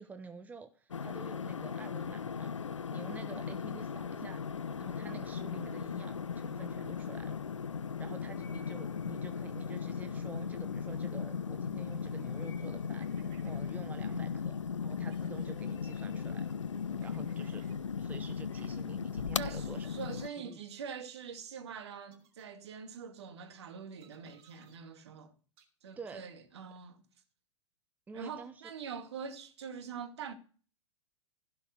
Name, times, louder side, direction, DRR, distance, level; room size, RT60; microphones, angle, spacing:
voice 1, 0.0-2.5 2.9-4.4 4.8-7.4 8.0-14.5 14.8-16.6 17.0-17.6 18.0-19.9 20.4-20.6 26.0-26.2 28.1-28.6, right 4 dB, 10° right, 1.0 m, -49 dB
sound 1, 0.9-20.3, left 6 dB, 80° left, 0.5 m, -37 dB
voice 2, 4.0-4.4 5.1-5.3 19.4-25.3 25.8-27.0 28.1-30.3, right 6 dB, 60° right, 2.2 m, -44 dB
sound 2, 6.1-18.9, left 6 dB, 30° left, 4.2 m, -60 dB
sound 3, 13.0-13.6 14.0-14.2 15.0-15.5 17.0-17.8 18.6-18.7 20.0-20.6 21.0-21.2 22.0-22.5 24.0-24.8 25.6-25.7, right 8 dB, 40° right, 3.3 m, -64 dB
16.0 x 5.8 x 6.7 m
figure-of-eight pair, 100°, 16 cm